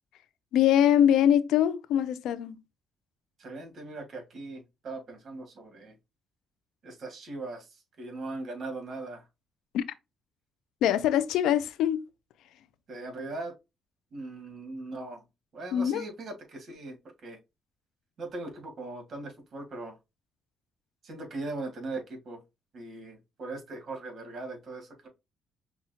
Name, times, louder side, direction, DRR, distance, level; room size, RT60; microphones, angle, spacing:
voice 1, 0.5-2.6 9.7-9.8 10.8-12.1 15.7-16.0, left 10 dB, 85° left, 0.4 m, -23 dB
voice 2, 3.4-5.9 6.8-7.7 8.0-9.2 12.9-13.5 14.1-15.2 15.5-17.4 18.2-20.0 21.0-22.4 22.7-25.1, right 2 dB, 55° right, 1.9 m, -39 dB
5.7 x 2.3 x 2.8 m
cardioid pair, 90°, 0 cm